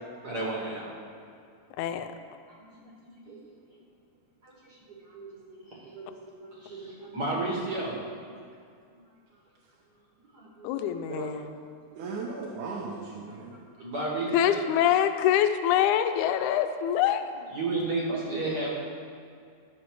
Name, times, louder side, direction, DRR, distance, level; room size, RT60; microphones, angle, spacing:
voice 1, 0.2-1.0 2.5-3.4 4.4-6.2 6.4-8.2 10.3-10.7 13.7-14.6 17.5-18.7, right 2 dB, 45° right, -3 dB, 1.4 m, -33 dB
voice 2, 1.8-2.1 10.6-11.4 14.3-17.2, left 10 dB, 85° left, 9 dB, 2.0 m, -25 dB
voice 3, 12.0-13.6 18.1-18.2, right 4 dB, 85° right, -3 dB, 2.3 m, -37 dB
11.0 x 6.4 x 4.6 m, 2.3 s
omnidirectional pair, 3.4 m